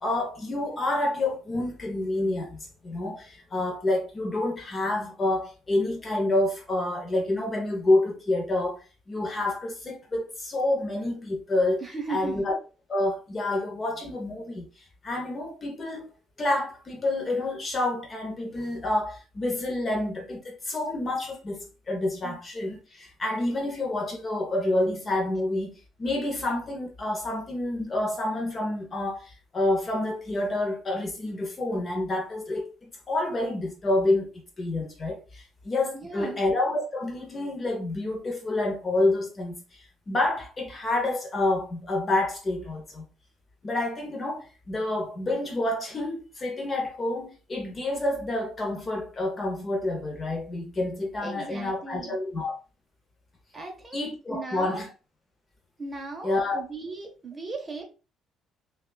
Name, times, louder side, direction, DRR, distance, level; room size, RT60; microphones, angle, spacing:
voice 1, 0.0-11.8 12.1-12.6 12.9-14.7 15.0-16.1 16.4-43.1 43.6-52.6 53.9-54.9 56.2-56.6, left 2 dB, 25° left, 0.7 m, -28 dB
voice 2, 11.8-12.3 22.2-22.4 35.9-36.4 51.2-52.2 53.5-54.0 54.3-54.8 55.8-57.8, right 3 dB, 20° right, 0.7 m, -37 dB
5.7 x 2.3 x 2.2 m
cardioid pair, 155°, 0 cm